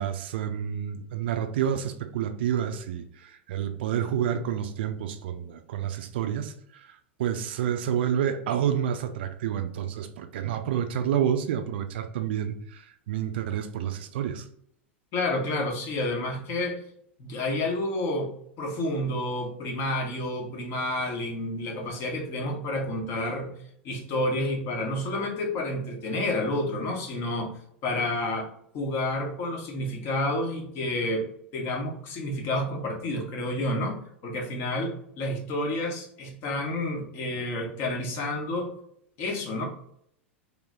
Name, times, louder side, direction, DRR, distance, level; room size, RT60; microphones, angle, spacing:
voice 1, 0.0-6.5 6.8-14.4, right 9 dB, 55° right, 8 dB, 0.4 m, -29 dB
voice 2, 15.1-16.8 17.2-18.3 18.6-23.5 23.8-27.5 27.8-28.5 28.7-34.0 34.2-38.7 39.2-39.7, left 1 dB, 40° left, 1 dB, 1.0 m, -29 dB
3.2 x 3.0 x 3.7 m, 0.69 s
figure-of-eight pair, 90°, 7 cm